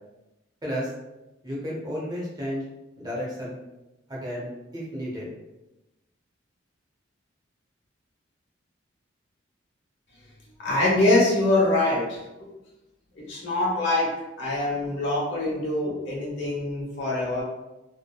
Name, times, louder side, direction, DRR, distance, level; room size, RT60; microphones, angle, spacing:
voice 1, 1.4-2.7 3.0-3.6 4.1-5.3, equal, 20° right, -5 dB, 0.6 m, -32 dB
voice 2, 10.6-12.5 13.2-17.4, left 2 dB, 70° left, -5 dB, 0.9 m, -24 dB
2.7 x 2.1 x 2.2 m, 0.98 s
head